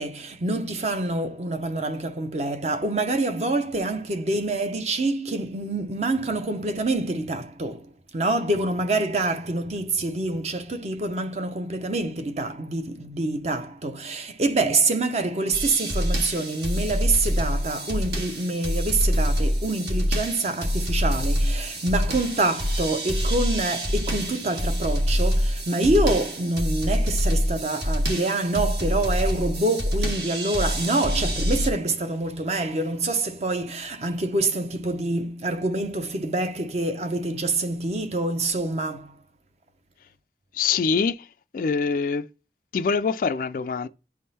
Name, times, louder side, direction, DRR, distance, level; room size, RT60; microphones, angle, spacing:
voice 1, 0.0-39.2, right 2 dB, 40° right, 0.7 m, -26 dB
sound 1, 15.5-31.7, equal, 70° right, 1.6 m, -26 dB
voice 2, 40.5-41.3 41.5-42.2 42.7-43.9, left 5 dB, 50° left, 0.3 m, -24 dB
10.5 x 3.6 x 4.1 m
head